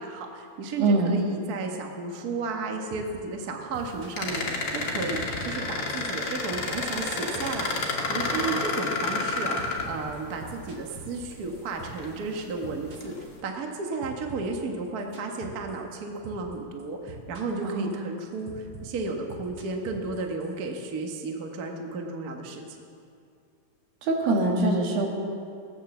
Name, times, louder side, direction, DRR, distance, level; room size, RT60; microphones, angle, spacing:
voice 1, 0.0-4.4 4.7-22.8, right 3 dB, 70° right, 2 dB, 0.8 m, -33 dB
voice 2, 0.8-1.1 17.6-17.9 24.0-25.1, right 2 dB, 85° right, 0 dB, 3.7 m, -23 dB
sound 1, 2.9-3.2 3.5-4.9 5.1-7.1 7.4-7.7 7.9-12.1 12.4-13.8 14.0-16.0 16.2-16.5 16.8-17.7 17.9-20.5, right 5 dB, 50° right, 2.9 m, -44 dB
sound 2, 4.2-10.4 11.3-11.4 11.9-12.5 13.0-13.2, left 3 dB, 50° left, 2.4 m, -30 dB
18.5 x 9.4 x 7.2 m, 2.5 s
omnidirectional pair, 4.1 m